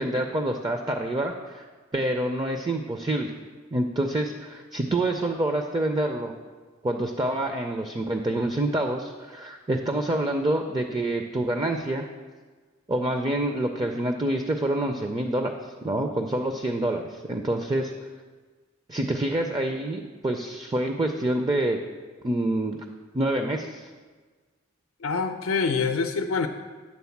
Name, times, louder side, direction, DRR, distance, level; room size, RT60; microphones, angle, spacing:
voice 1, 0.0-1.6 1.9-3.3 3.7-6.3 6.8-12.1 12.9-15.5 15.8-17.9 18.9-21.8 22.2-22.8 23.1-23.9, right 1 dB, 20° right, 5 dB, 0.4 m, -27 dB
voice 2, 25.0-26.5, left 5 dB, 85° left, 6 dB, 0.5 m, -25 dB
9.5 x 3.8 x 7.1 m, 1.4 s
head